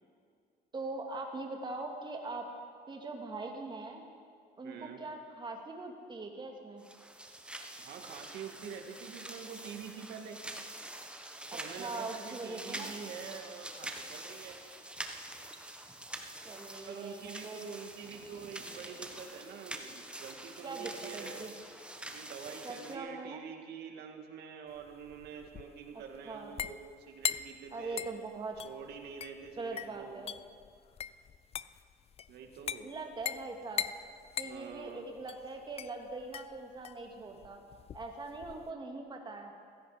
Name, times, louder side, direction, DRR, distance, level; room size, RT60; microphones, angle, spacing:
voice 1, 0.7-2.5 2.9-4.0 4.6-6.8 11.7-13.0 16.4-17.6 20.6-21.5 22.6-23.4 26.3-26.5 27.7-28.6 29.6-30.3 32.8-33.9 34.4-37.6 37.9-39.5, right 3 dB, 25° right, 2 dB, 2.4 m, -42 dB
voice 2, 4.6-5.0 7.8-10.4 11.5-14.6 16.8-21.5 22.1-26.8 27.1-28.0 28.6-30.2 32.3-32.9 34.4-35.1, right 6 dB, 75° right, 3 dB, 2.2 m, -46 dB
sound 1, 6.8-23.0, right 1 dB, 5° right, 1.2 m, -46 dB
sound 2, 17.9-19.4 21.2-21.7, right 5 dB, 50° right, 2.3 m, -55 dB
sound 3, 24.8-38.7, left 8 dB, 35° left, 0.4 m, -41 dB
16.0 x 16.0 x 5.1 m, 2.3 s
cardioid pair, 110°, 17 cm